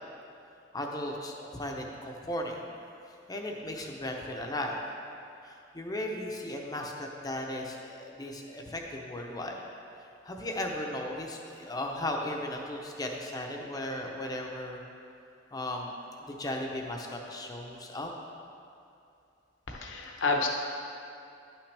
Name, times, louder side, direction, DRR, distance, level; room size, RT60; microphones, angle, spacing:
voice 1, 0.7-2.6 3.1-4.8 5.4-9.6 10.0-14.8 15.5-18.1, left 1 dB, 20° left, 1 dB, 0.6 m, -36 dB
voice 2, 19.7-20.5, left 3 dB, 70° left, 1 dB, 0.9 m, -29 dB
10.5 x 5.9 x 3.3 m, 2.6 s
head